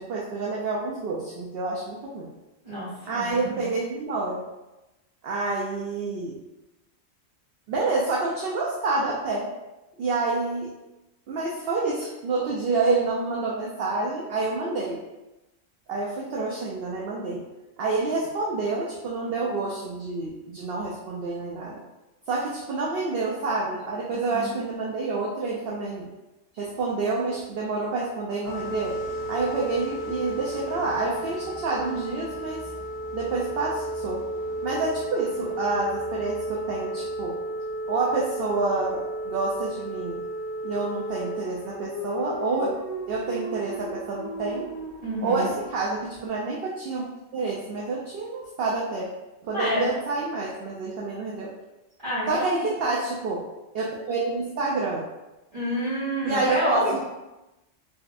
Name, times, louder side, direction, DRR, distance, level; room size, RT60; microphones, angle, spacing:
voice 1, 0.0-2.3 3.1-4.4 5.2-6.4 7.7-9.5 10.0-10.7 11.3-15.0 15.9-17.4 17.8-21.8 22.3-26.1 26.5-28.9 29.3-32.6 33.1-34.2 34.6-37.3 37.9-40.2 40.6-42.7 43.1-44.7 45.2-47.0 47.3-49.1 49.4-51.5 52.3-53.4 53.7-55.0 56.2-57.0, right 3 dB, 60° right, -4 dB, 0.7 m, -28 dB
voice 2, 2.6-3.6 24.3-24.6 45.0-45.5 49.5-49.9 52.0-52.7 55.5-57.0, equal, 35° right, -13 dB, 1.3 m, -28 dB
sound 1, 28.4-46.2, right 1 dB, 40° left, 1.2 m, -34 dB
3.9 x 2.5 x 2.4 m, 1.0 s
omnidirectional pair, 1.3 m